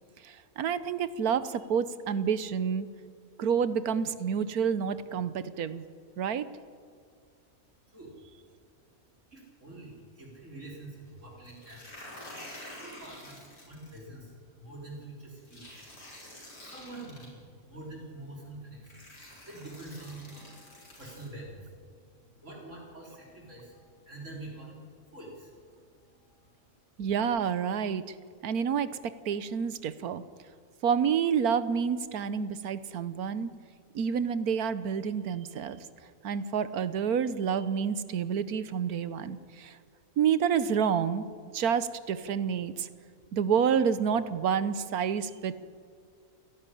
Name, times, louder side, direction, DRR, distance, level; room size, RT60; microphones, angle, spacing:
voice 1, 0.2-2.9 3.4-5.8 6.2-6.5 27.0-28.0 28.4-28.9 29.2-30.2 30.8-33.5 33.9-35.8 36.2-39.8 40.2-41.2 41.5-42.9 43.3-45.5, right 7 dB, 85° right, 14 dB, 1.4 m, -28 dB
voice 2, 9.3-11.8 12.6-16.2 16.4-26.6, right 2 dB, 55° right, -3 dB, 4.4 m, -46 dB
sound 1, 11.4-14.0 15.5-17.3 18.3-18.4 18.8-21.3, left 1 dB, 85° left, 6.1 m, -48 dB
28.0 x 12.5 x 10.0 m, 2.1 s
omnidirectional pair, 1.5 m